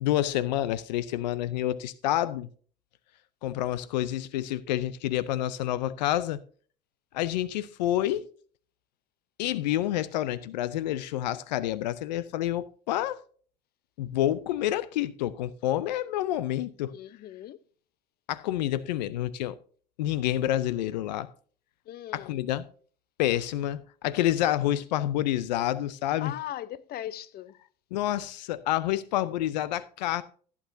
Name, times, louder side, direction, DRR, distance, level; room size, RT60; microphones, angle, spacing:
voice 1, 0.0-2.5 3.4-6.4 7.1-8.3 9.4-13.2 14.0-16.9 18.3-19.6 20.0-21.3 22.1-22.6 23.2-26.3 27.9-30.2, left 13 dB, 85° left, 0.5 m, -28 dB
voice 2, 16.9-17.6 21.9-22.4 26.2-27.6, left 12 dB, 45° left, 0.7 m, -39 dB
15.5 x 8.5 x 2.6 m
hypercardioid pair, 80°, 21 cm